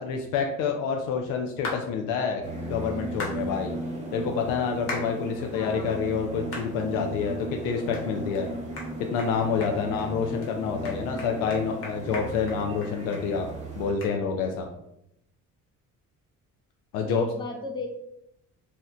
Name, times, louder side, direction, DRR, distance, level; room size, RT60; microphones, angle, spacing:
voice 1, 0.0-2.4 2.7-3.8 4.1-8.5 9.0-13.5 13.8-14.7 16.9-17.2, left 6 dB, 85° left, 3 dB, 0.5 m, -28 dB
sound 1, 1.6-1.8 3.2-3.4 4.9-5.1 5.6-5.7 6.5-6.7 7.2-7.3 7.9-8.0 8.3-8.4 8.8-8.9 9.2-9.3 9.6-10.1 10.4-10.5 10.8-13.2 13.5-13.6 14.0-14.1, left 3 dB, 45° left, 0.9 m, -36 dB
sound 2, 2.4-13.9, right 2 dB, 20° right, 0.8 m, -36 dB
voice 2, 5.5-6.0 8.8-9.1 10.2-10.7 17.0-17.9, left 2 dB, 15° left, 2 dB, 0.5 m, -37 dB
2.8 x 2.1 x 3.6 m, 0.81 s
cardioid pair, 125°, 32 cm